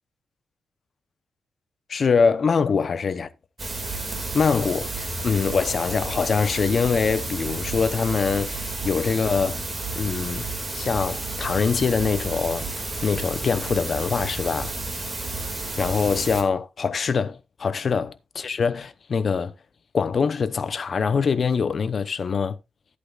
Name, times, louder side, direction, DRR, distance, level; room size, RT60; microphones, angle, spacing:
voice 1, 1.9-3.3 4.3-9.6 9.9-10.5 10.7-12.7 13.0-14.7 15.8-19.5 19.9-22.6, left 5 dB, 40° left, 0.7 m, -24 dB
sound 1, 3.6-16.4, right 2 dB, 25° right, 2.2 m, -31 dB
13.0 x 8.4 x 2.4 m
wide cardioid pair, 150°, 0 cm